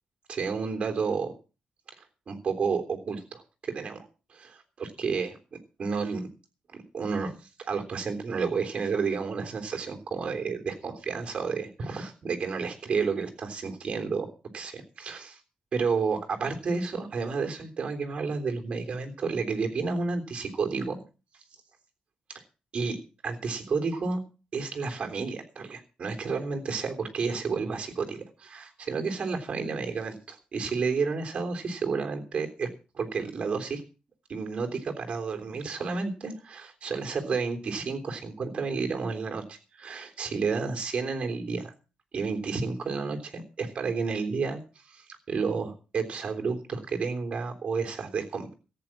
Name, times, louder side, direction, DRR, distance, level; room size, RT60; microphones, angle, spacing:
voice 1, 0.3-1.3 2.3-4.1 4.3-5.3 5.8-6.3 6.7-14.3 14.5-15.4 15.7-21.0 22.3-22.4 22.7-23.0 23.2-24.2 24.5-32.7 32.9-33.8 34.3-41.7 42.1-44.6 44.9-48.5, right 5 dB, 45° right, 4 dB, 3.5 m, -31 dB
14.0 x 9.3 x 7.4 m, 0.34 s
wide cardioid pair, 145°, 3 cm